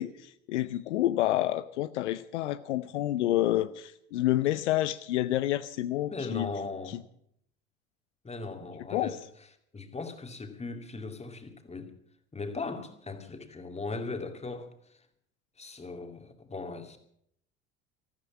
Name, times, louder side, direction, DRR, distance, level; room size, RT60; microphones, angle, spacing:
voice 1, 0.0-6.5 6.9-7.0 8.9-9.2, left 14 dB, 75° left, 0.6 m, -29 dB
voice 2, 6.1-7.0 8.2-9.2 9.7-12.0 12.3-14.7 15.6-17.0, left 3 dB, 20° left, 2.4 m, -38 dB
13.5 x 13.5 x 7.3 m
hypercardioid pair, 65°, 35 cm